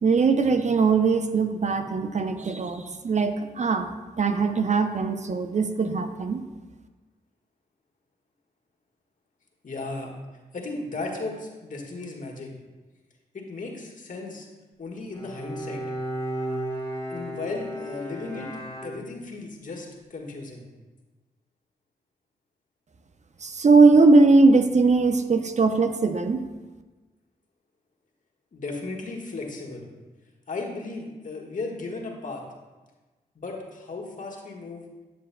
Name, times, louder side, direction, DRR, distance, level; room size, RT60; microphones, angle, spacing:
voice 1, 0.0-3.9 4.2-6.4 23.4-26.4, right 3 dB, 45° right, 7 dB, 0.6 m, -20 dB
voice 2, 9.6-10.1 10.5-12.5 13.3-14.5 14.8-15.8 17.1-18.6 18.8-20.6 28.5-29.9 30.5-32.4 33.3-34.9, left 3 dB, 55° left, 0 dB, 1.5 m, -35 dB
Bowed string instrument, 15.1-19.5, right 1 dB, 20° left, 1.8 m, -34 dB
8.1 x 7.7 x 2.2 m, 1.2 s
supercardioid pair, 45°, 16 cm